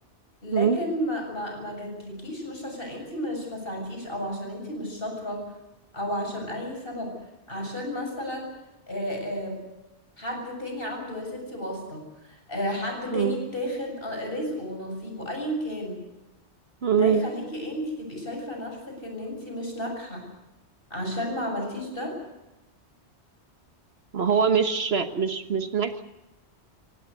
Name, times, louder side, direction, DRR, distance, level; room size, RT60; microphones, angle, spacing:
voice 1, 0.4-5.4 5.9-7.1 7.5-8.5 8.9-9.6 10.2-16.0 16.9-20.2 20.9-22.2, equal, 50° left, 1 dB, 7.6 m, -32 dB
voice 2, 16.8-17.3 24.1-26.0, right 6 dB, 60° right, 8 dB, 1.5 m, -23 dB
27.0 x 17.0 x 8.2 m, 0.97 s
omnidirectional pair, 1.2 m